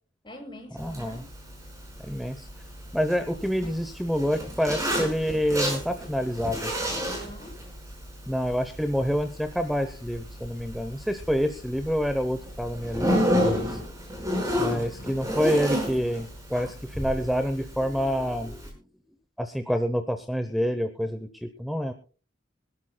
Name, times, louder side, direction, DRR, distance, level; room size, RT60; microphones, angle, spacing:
voice 1, 0.2-1.2 7.2-7.5 14.6-15.2, left 1 dB, 25° left, 2 dB, 6.8 m, -45 dB
voice 2, 0.8-1.2 2.0-2.5 2.9-6.7 8.3-13.8 14.6-18.7 19.4-21.9, equal, ahead, 8 dB, 0.8 m, -27 dB
Zipper (clothing), 0.8-18.7, equal, 15° right, 5.3 m, -32 dB
25.0 x 12.5 x 2.3 m, 0.37 s
head